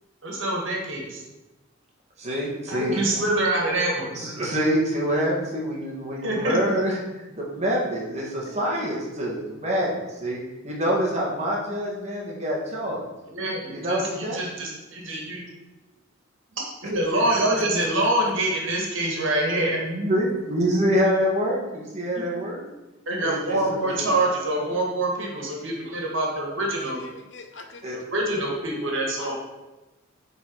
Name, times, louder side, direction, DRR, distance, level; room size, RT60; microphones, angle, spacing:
voice 1, 0.2-1.2 2.7-4.1 6.2-6.6 13.3-15.4 16.6-19.8 23.1-27.0 28.1-29.4, right 1 dB, 70° right, -1 dB, 1.9 m, -25 dB
voice 2, 2.2-3.2 4.1-13.0 13.7-14.4 15.1-15.2 17.1-17.3 17.6-17.7 19.5-22.6 23.2-24.0 27.8-28.0, equal, 30° right, -3 dB, 1.7 m, -26 dB
voice 3, 17.3-17.9 26.7-28.0 29.2-29.4, left 3 dB, 60° left, 5 dB, 0.9 m, -41 dB
9.3 x 4.2 x 4.7 m, 1.1 s
head